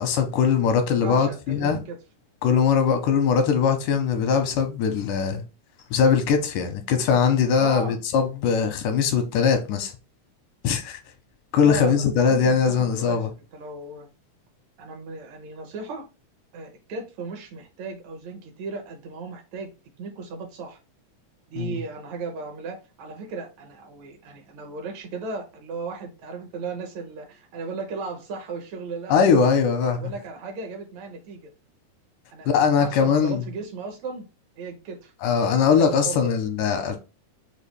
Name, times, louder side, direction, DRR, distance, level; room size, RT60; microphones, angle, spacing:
voice 1, 0.0-1.8 2.4-5.4 5.9-9.9 10.6-11.0 11.5-13.3 21.6-21.8 29.1-30.1 32.5-33.4 35.2-37.0, left 6 dB, 85° left, 2.3 m, -21 dB
voice 2, 1.0-2.0 7.6-8.0 11.6-14.1 14.8-16.0 16.5-19.7 20.0-20.8 21.5-29.2 29.9-31.5 32.3-34.3 34.6-35.1 35.8-36.3, right 4 dB, 70° right, 2.0 m, -36 dB
6.0 x 2.4 x 3.3 m
omnidirectional pair, 3.6 m